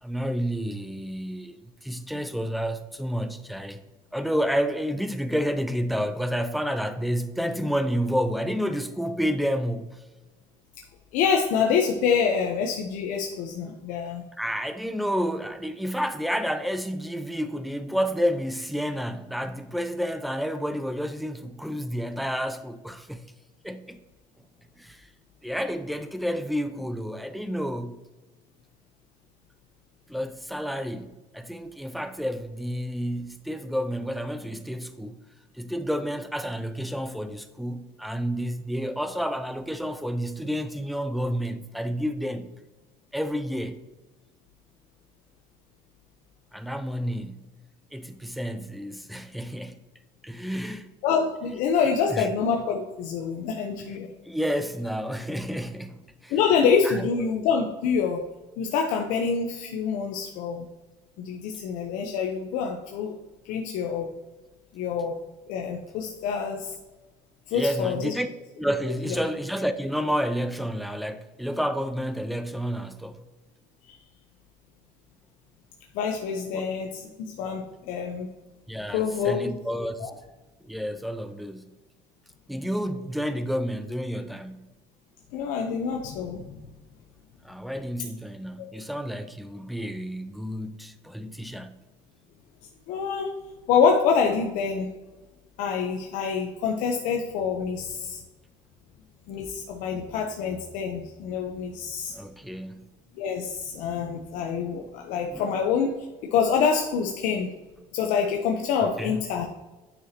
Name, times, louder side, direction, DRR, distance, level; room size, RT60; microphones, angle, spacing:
voice 1, 0.0-3.8 4.1-10.0 14.4-23.2 23.6-24.0 24.8-25.1 25.4-28.1 30.1-35.2 35.5-42.5 43.1-43.8 46.5-47.4 47.9-49.8 50.2-50.9 51.8-52.3 53.8-53.9 54.2-56.3 56.8-57.2 67.5-68.3 68.6-73.2 76.5-76.7 78.7-80.1 80.6-81.7 82.5-84.7 87.4-91.8 102.1-102.9 105.3-105.6 108.8-109.2, equal, ahead, 0.4 m, -30 dB
voice 2, 11.1-14.2 51.0-54.1 56.3-58.2 58.6-60.7 61.2-63.1 63.4-64.1 64.7-65.2 65.5-66.7 67.5-68.1 68.8-69.2 73.9-74.0 75.9-78.3 78.9-79.5 80.0-80.1 85.3-86.6 88.6-88.7 92.9-93.3 93.7-94.9 95.6-98.2 99.3-102.2 103.1-105.9 106.3-107.5 107.9-109.5, left 6 dB, 75° left, 0.8 m, -26 dB
9.3 x 5.9 x 2.9 m
cardioid pair, 140°, 13 cm